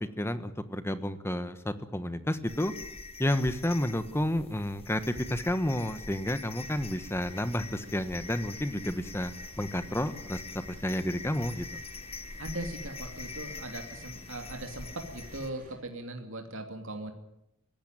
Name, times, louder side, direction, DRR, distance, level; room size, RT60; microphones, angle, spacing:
voice 1, 0.2-2.7 3.2-10.4 10.7-11.8, left 1 dB, 10° left, 11 dB, 1.2 m, -31 dB
sound 1, 2.5-15.5, left 3 dB, 25° left, 1.2 m, -44 dB
sound 2, 6.5-15.8, right 1 dB, 35° right, 7.2 m, -55 dB
voice 2, 12.4-17.1, right 1 dB, 60° right, 4 dB, 2.7 m, -39 dB
22.5 x 17.5 x 9.1 m, 0.80 s
head